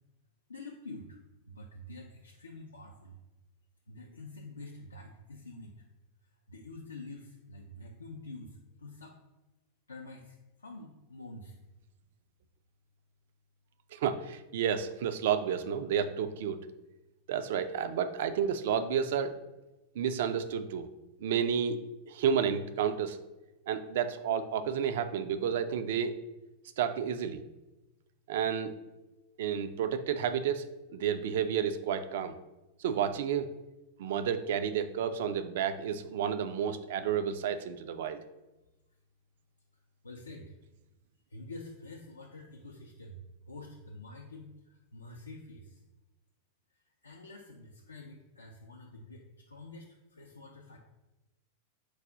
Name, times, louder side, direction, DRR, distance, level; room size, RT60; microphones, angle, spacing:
voice 1, 0.5-1.2 1.5-3.2 3.9-5.8 6.5-9.2 9.9-11.6 40.0-40.6 41.3-45.8 46.7-50.8, left 2 dB, 75° left, 0 dB, 0.4 m, -47 dB
voice 2, 13.9-16.6 17.3-19.4 20.0-20.9 21.2-21.8 22.1-23.2 23.7-26.2 26.8-27.4 28.3-28.7 29.4-32.4 32.8-33.5 34.0-38.2, right 8 dB, 55° right, 10 dB, 0.3 m, -31 dB
4.6 x 2.3 x 3.9 m, 1.0 s
figure-of-eight pair, 90°, 0 cm